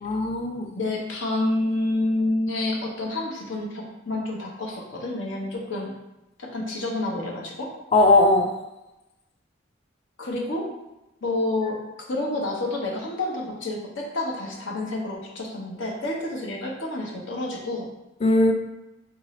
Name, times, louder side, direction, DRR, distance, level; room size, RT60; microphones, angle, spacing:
voice 1, 0.0-0.7 7.9-8.5 18.2-18.5, left 2 dB, 30° left, 4 dB, 0.3 m, -19 dB
voice 2, 0.7-5.9 6.4-7.7 10.2-10.7 11.2-11.8 12.1-17.9, left 2 dB, 70° left, -2 dB, 0.8 m, -28 dB
3.7 x 2.6 x 3.1 m, 0.97 s
head